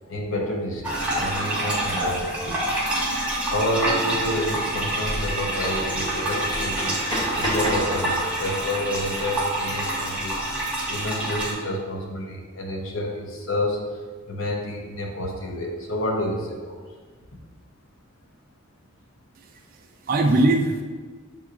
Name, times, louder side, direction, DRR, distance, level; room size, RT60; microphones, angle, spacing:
voice 1, 0.1-2.6 3.5-10.4 10.9-13.8 14.3-16.8, left 1 dB, 85° left, 1 dB, 0.8 m, -29 dB
sound 1, 0.8-11.5, right 1 dB, 5° right, 0.8 m, -27 dB
sound 2, 1.9-2.0 4.3-8.4, equal, 20° left, 1.0 m, -31 dB
voice 2, 19.4-20.8, right 2 dB, 45° right, 3 dB, 0.3 m, -22 dB
6.8 x 2.9 x 2.5 m, 1.5 s
head